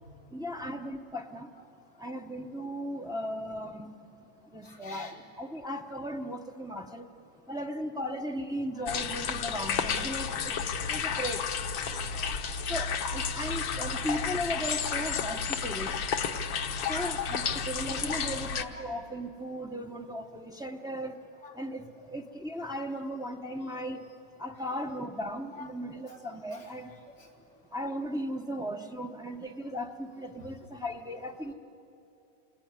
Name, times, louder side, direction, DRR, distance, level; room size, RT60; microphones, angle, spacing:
voice 1, 0.3-1.5 2.0-3.9 4.5-7.1 7.5-10.6 10.9-11.4 12.7-15.9 16.9-21.1 21.6-24.0 24.4-26.9 27.7-31.5, equal, 5° right, 3 dB, 0.4 m, -36 dB
voice 2, 4.6-5.2 8.7-8.9 10.3-10.6 11.8-12.8 13.4-13.6 14.4-14.5 16.8-17.2 17.5-18.8 21.4-21.5 25.5-25.7 26.0-27.3 31.4-31.5, left 2 dB, 45° left, -1 dB, 3.2 m, -47 dB
sound 1, 8.9-18.6, left 6 dB, 80° left, 1.8 m, -32 dB
27.5 x 20.0 x 9.6 m, 2.7 s
omnidirectional pair, 2.0 m